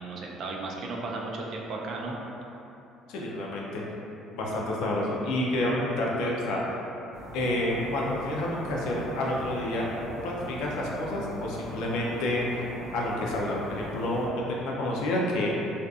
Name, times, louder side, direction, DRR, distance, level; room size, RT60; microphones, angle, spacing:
voice 1, 0.0-2.2, right 3 dB, 45° right, -2 dB, 0.3 m, -35 dB
voice 2, 3.1-3.8 4.3-6.6 7.3-9.9 10.2-12.6 12.9-15.5, left 1 dB, 80° left, -3 dB, 0.4 m, -29 dB
sound 1, 7.1-14.3, equal, 20° right, 1.2 m, -40 dB
2.5 x 2.3 x 2.3 m, 2.9 s
cardioid pair, 150°, 0 cm